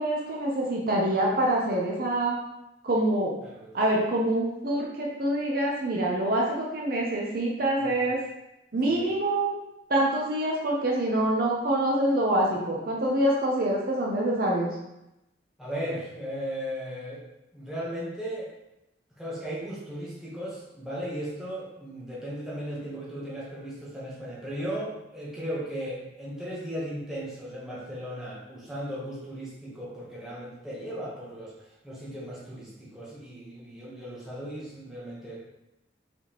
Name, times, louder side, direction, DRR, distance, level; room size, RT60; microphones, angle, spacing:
voice 1, 0.0-2.4 2.8-3.3 3.7-8.2 8.7-9.6 9.9-14.7, right 1 dB, 50° right, -2 dB, 0.6 m, -25 dB
voice 2, 3.4-3.7 7.8-8.2 8.9-9.1 15.6-17.2 17.5-18.5 19.2-35.4, equal, ahead, -7 dB, 1.0 m, -36 dB
4.7 x 3.6 x 3.0 m, 0.89 s
head